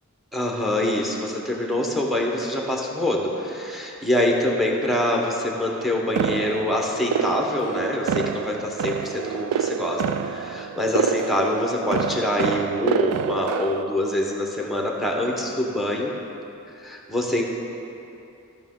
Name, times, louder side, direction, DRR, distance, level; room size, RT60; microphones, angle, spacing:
voice 1, 0.3-16.1 16.8-17.4, left 1 dB, ahead, -1 dB, 1.0 m, -25 dB
sound 1, 6.2-13.8, right 8 dB, 90° right, 0.3 m, -27 dB
14.0 x 5.9 x 3.8 m, 2.8 s
head